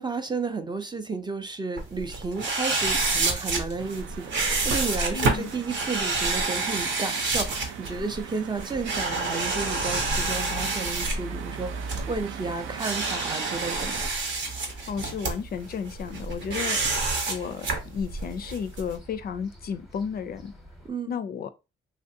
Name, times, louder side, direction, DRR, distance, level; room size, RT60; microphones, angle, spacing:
voice 1, 0.0-14.0 20.8-21.2, right 4 dB, 20° right, 0.4 m, -32 dB
sound 1, 1.8-19.0, right 3 dB, 65° right, 0.9 m, -28 dB
sound 2, 3.8-14.1, right 9 dB, 85° right, 0.4 m, -41 dB
voice 2, 5.1-5.5 14.6-16.8 17.3-20.5 21.1-21.5, left 6 dB, 50° left, 0.4 m, -33 dB
sound 3, 8.8-20.9, left 1 dB, ahead, 0.8 m, -43 dB
3.2 x 2.4 x 2.6 m
cardioid pair, 90°, 20 cm